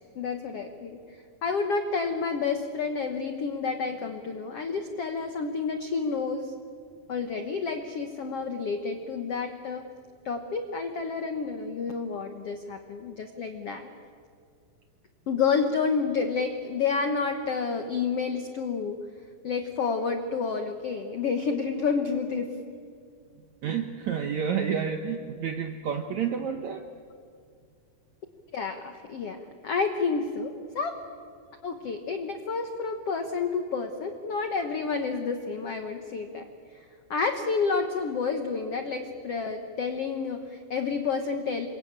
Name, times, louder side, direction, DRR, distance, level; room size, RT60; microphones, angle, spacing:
voice 1, 0.1-6.5 7.1-9.9 10.2-13.9 15.3-19.0 19.4-22.6 28.5-30.9 31.6-41.7, left 5 dB, 70° left, 6 dB, 1.4 m, -30 dB
voice 2, 23.6-26.9, right 7 dB, 70° right, 5 dB, 1.8 m, -30 dB
28.0 x 23.0 x 8.9 m, 2.2 s
omnidirectional pair, 4.6 m